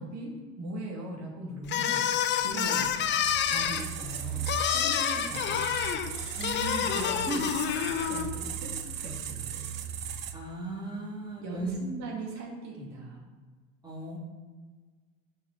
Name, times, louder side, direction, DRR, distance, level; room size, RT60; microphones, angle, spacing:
voice 1, 0.0-2.1 2.4-2.9 3.5-5.7 7.0-9.6 11.4-13.2, right 1 dB, 40° right, 0 dB, 2.4 m, -40 dB
sound 1, 1.7-8.3, left 9 dB, 30° left, 0.6 m, -28 dB
sound 2, 3.2-10.3, right 8 dB, 80° right, 0.8 m, -37 dB
voice 2, 6.4-7.4 10.3-11.8 13.8-14.2, right 3 dB, 10° right, -3 dB, 2.1 m, -37 dB
6.5 x 5.8 x 6.6 m, 1.4 s
figure-of-eight pair, 75°, 40 cm